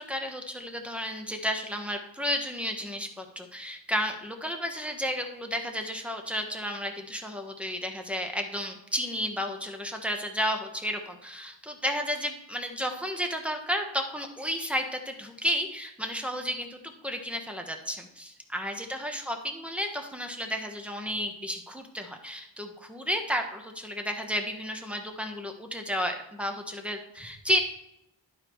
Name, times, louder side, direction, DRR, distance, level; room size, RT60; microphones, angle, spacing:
voice 1, 0.0-27.6, equal, 5° right, 4 dB, 1.3 m, -32 dB
11.0 x 4.9 x 4.7 m, 0.84 s
wide cardioid pair, 70°, 43 cm